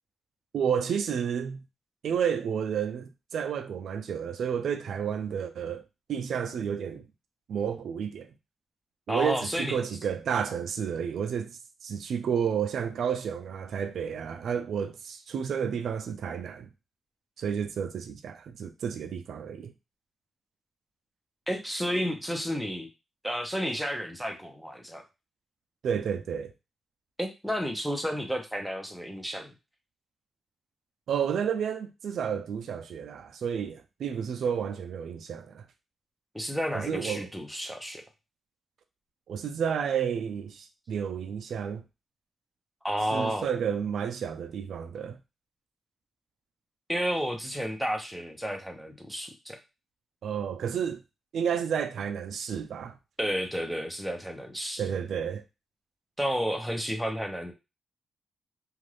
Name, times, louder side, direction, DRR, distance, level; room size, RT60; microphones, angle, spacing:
voice 1, 0.5-1.6 2.0-5.8 6.1-7.1 7.5-8.3 9.1-16.7 17.4-19.7 25.8-26.5 31.1-35.7 36.7-37.3 39.3-41.8 43.1-45.2 50.2-51.0 51.3-53.0 54.8-55.4, right 7 dB, 80° right, 0.3 m, -31 dB
voice 2, 9.1-9.7 21.5-22.9 23.2-25.0 27.2-29.5 36.3-38.0 42.8-43.5 46.9-49.6 53.2-54.8 56.2-57.5, equal, ahead, 0.7 m, -31 dB
2.5 x 2.4 x 3.2 m
cardioid pair, 80°, 0 cm